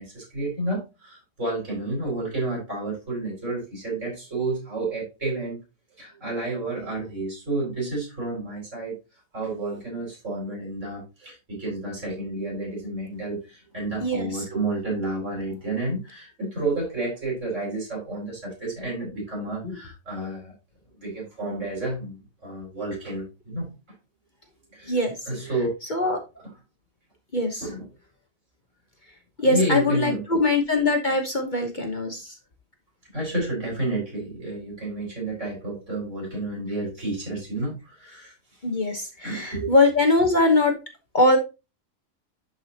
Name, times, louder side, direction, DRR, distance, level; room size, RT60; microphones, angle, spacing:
voice 1, 0.0-5.6 6.0-9.0 9.3-20.5 21.0-23.7 24.7-25.7 26.4-26.5 27.6-27.9 29.4-30.4 33.1-38.3 39.2-39.7, right 2 dB, 65° right, -2 dB, 5.6 m, -30 dB
voice 2, 29.4-32.2 38.6-40.7 41.1-41.4, left 2 dB, 35° left, 4 dB, 1.2 m, -22 dB
11.0 x 4.9 x 2.9 m, 0.26 s
omnidirectional pair, 1.4 m